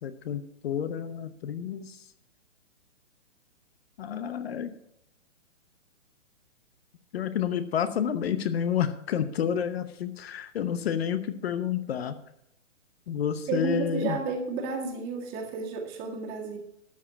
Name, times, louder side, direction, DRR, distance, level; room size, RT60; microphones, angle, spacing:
voice 1, 0.0-2.0 4.0-4.8 7.1-12.2 13.1-14.2, left 8 dB, 55° left, 11 dB, 0.9 m, -30 dB
voice 2, 13.5-16.6, right 4 dB, 25° right, 2 dB, 1.9 m, -32 dB
13.0 x 4.9 x 7.4 m, 0.78 s
hypercardioid pair, 145°, 38 cm